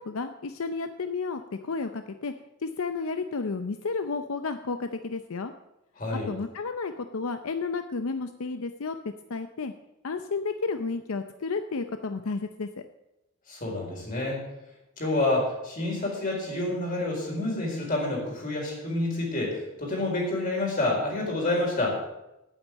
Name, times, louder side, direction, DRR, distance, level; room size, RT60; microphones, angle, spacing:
voice 1, 0.0-2.3 2.6-5.5 6.3-9.0 9.3-9.7 10.0-12.7, left 4 dB, 85° left, 8 dB, 0.6 m, -32 dB
voice 2, 6.0-6.3 13.5-14.4 15.0-22.0, left 2 dB, 40° left, -2 dB, 4.4 m, -28 dB
9.1 x 9.0 x 7.5 m, 0.92 s
head